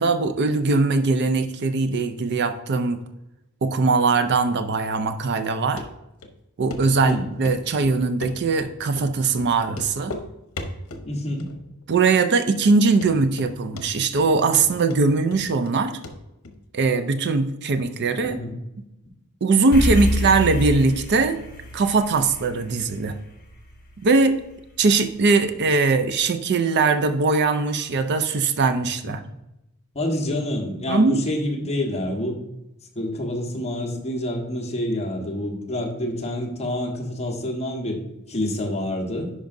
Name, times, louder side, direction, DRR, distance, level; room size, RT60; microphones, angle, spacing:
voice 1, 0.0-3.0 3.6-5.8 6.6-10.1 11.9-16.0 16.7-18.4 19.4-21.4 21.7-23.2 24.0-24.4 24.8-29.2 30.9-31.2, right 3 dB, 50° right, 9 dB, 0.5 m, -21 dB
Run, 5.8-5.9 6.2-6.3 6.7-6.8 7.1-7.6 7.8-8.7 9.0-9.1 9.4-9.5 9.7-10.3 10.6-11.1 11.4-11.8 12.1-12.2 12.7-12.8 13.0-13.5 13.8-14.3 14.5-15.8 16.0-16.2 16.4-16.5, left 2 dB, 80° left, 0.9 m, -36 dB
voice 2, 11.0-11.5 18.2-18.5 29.9-32.4 32.9-38.0 38.3-39.3, left 1 dB, 30° left, -1 dB, 1.4 m, -27 dB
sound 1, 19.7-24.2, left 1 dB, 45° left, 1.6 m, -27 dB
10.5 x 5.0 x 2.6 m, 0.91 s
head